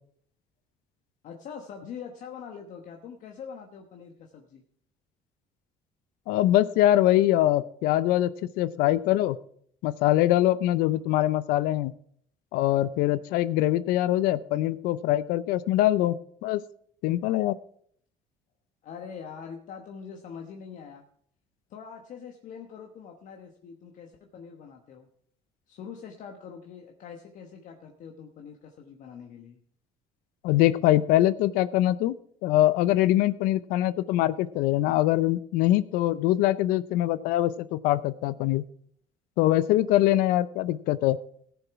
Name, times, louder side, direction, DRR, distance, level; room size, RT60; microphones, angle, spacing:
voice 1, 1.2-4.6 18.8-21.0 21.7-25.1 25.7-29.6, left 6 dB, 60° left, 3 dB, 1.2 m, -43 dB
voice 2, 6.3-8.3 8.6-9.4 9.8-11.9 12.5-16.6 17.0-17.6 30.4-32.2 32.4-38.6 39.4-41.2, left 14 dB, 85° left, 16 dB, 0.6 m, -23 dB
15.5 x 7.1 x 4.7 m, 0.63 s
cardioid pair, 105°, 15 cm